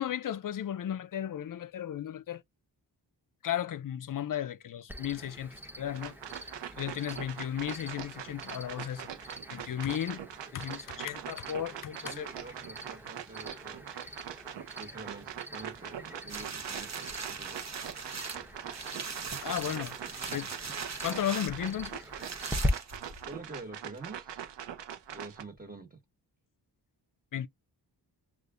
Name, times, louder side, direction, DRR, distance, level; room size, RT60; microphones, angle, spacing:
voice 1, 0.0-2.4 3.4-6.2 6.8-10.2 10.5-12.3 19.4-20.0 20.2-20.5 21.0-22.0 27.3-27.5, left 10 dB, 50° left, 0.5 m, -35 dB
Cricket, 4.9-22.7, equal, 5° right, 0.9 m, -43 dB
sound 1, 5.9-25.4, right 10 dB, 80° right, 0.8 m, -43 dB
voice 2, 12.0-14.4 14.8-17.8 23.3-24.4 25.1-26.0, right 3 dB, 20° right, 1.5 m, -47 dB
sound 2, 16.3-23.4 24.0-24.1, right 5 dB, 40° right, 1.0 m, -40 dB
6.5 x 2.5 x 2.4 m
cardioid pair, 55°, 42 cm